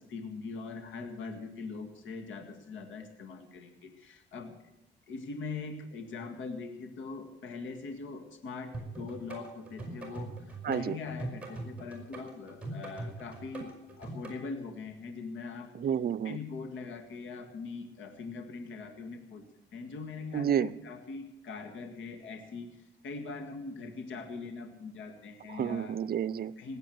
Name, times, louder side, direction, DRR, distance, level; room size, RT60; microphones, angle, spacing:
voice 1, 0.1-4.5 5.1-8.7 9.0-15.7 16.2-19.4 19.7-26.0 26.6-26.8, left 4 dB, 75° left, 7 dB, 2.0 m, -42 dB
sound 1, 8.7-14.4, right 2 dB, 5° right, 5.1 m, -41 dB
voice 2, 10.6-11.0 15.7-16.4 20.3-20.7 25.5-26.5, right 9 dB, 50° right, 17 dB, 0.6 m, -30 dB
18.5 x 8.1 x 7.8 m, 0.91 s
cardioid pair, 90°, 20 cm